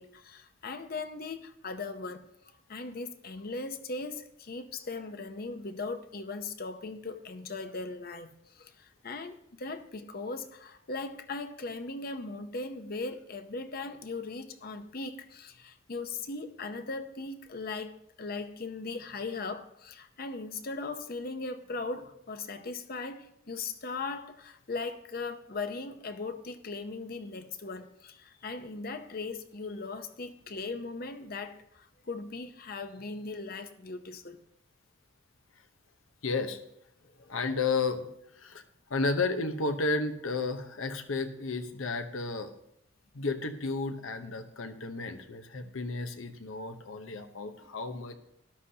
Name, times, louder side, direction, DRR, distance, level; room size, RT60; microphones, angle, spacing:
voice 1, 0.0-34.4 45.6-45.7, left 3 dB, 50° left, 0.7 m, -39 dB
voice 2, 36.2-36.6 37.3-38.1 38.4-38.6 38.9-42.5 43.1-48.1, left 3 dB, 90° left, 1.0 m, -32 dB
13.0 x 11.5 x 2.8 m
head